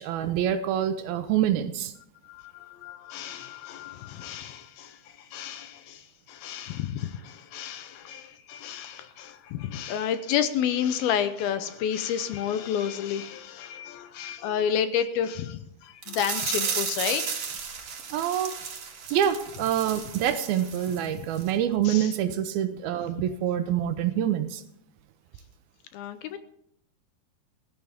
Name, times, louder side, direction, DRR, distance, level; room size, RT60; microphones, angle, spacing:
voice 1, 0.0-1.9 18.1-18.5 19.1-24.6, right 10 dB, 75° right, 10 dB, 2.5 m, -26 dB
voice 2, 2.2-17.6 18.6-18.7 21.2-21.3 21.8-22.1 25.9-26.4, left 9 dB, 75° left, 11 dB, 2.4 m, -31 dB
sound 1, 16.0-21.1 21.3-21.5 21.9-22.0, right 6 dB, 50° right, 2.8 m, -34 dB
16.0 x 15.0 x 3.6 m, 0.73 s
omnidirectional pair, 4.7 m